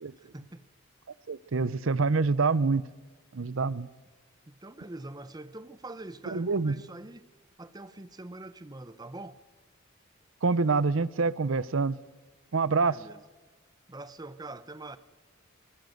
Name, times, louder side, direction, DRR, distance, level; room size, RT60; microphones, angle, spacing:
voice 1, 0.2-0.6 4.5-7.3 7.6-9.4 12.9-13.2 13.9-15.0, right 2 dB, 20° right, 0.7 m, -44 dB
voice 2, 1.3-2.8 3.3-3.9 6.3-6.8 10.4-12.0 12.5-13.0, right 4 dB, 70° right, 0.6 m, -26 dB
23.0 x 19.5 x 7.9 m
head